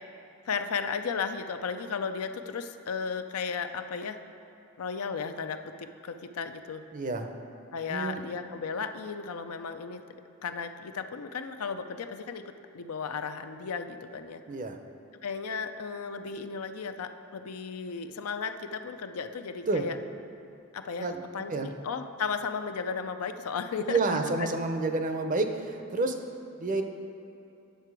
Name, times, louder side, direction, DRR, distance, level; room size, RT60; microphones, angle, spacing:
voice 1, 0.4-4.2 4.8-6.8 7.7-10.0 10.4-14.4 15.2-20.0 20.7-24.5, left 5 dB, 80° left, 8 dB, 0.5 m, -35 dB
voice 2, 6.9-7.3 7.9-8.3 14.5-14.8 19.7-19.8 21.0-21.2 21.5-21.7 23.8-26.2 26.6-26.8, right 3 dB, 35° right, 6 dB, 0.6 m, -29 dB
9.3 x 6.6 x 4.7 m, 2.8 s
head